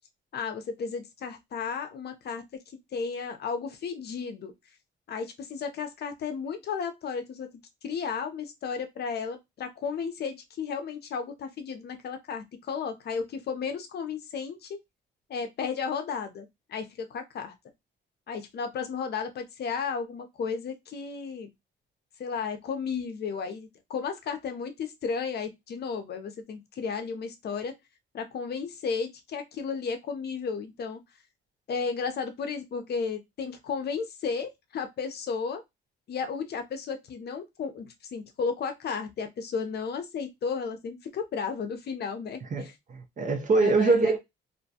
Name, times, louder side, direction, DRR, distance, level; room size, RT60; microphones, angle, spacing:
voice 1, 0.3-2.4 2.9-4.5 5.1-7.5 7.8-14.8 15.3-17.5 18.3-21.5 22.2-27.7 28.1-31.0 31.7-35.6 36.1-42.7 43.6-44.1, left 5 dB, 55° left, 0.6 m, -33 dB
voice 2, 42.5-44.2, right 3 dB, 40° right, 0.6 m, -24 dB
2.5 x 2.2 x 2.7 m
cardioid pair, 90°, 20 cm